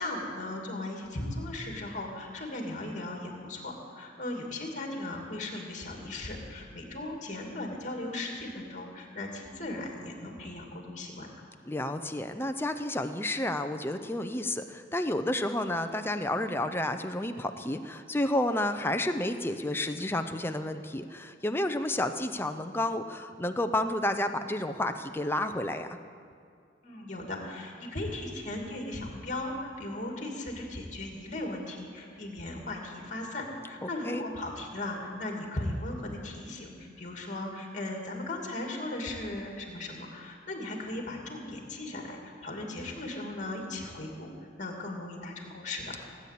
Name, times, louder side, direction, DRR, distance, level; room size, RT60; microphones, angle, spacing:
voice 1, 0.0-11.3 26.8-44.3 44.6-46.0, left 2 dB, 40° left, 1 dB, 2.5 m, -37 dB
voice 2, 11.7-26.0 33.8-34.2, left 1 dB, 10° left, 7 dB, 0.6 m, -31 dB
18.0 x 8.6 x 8.4 m, 2.3 s
head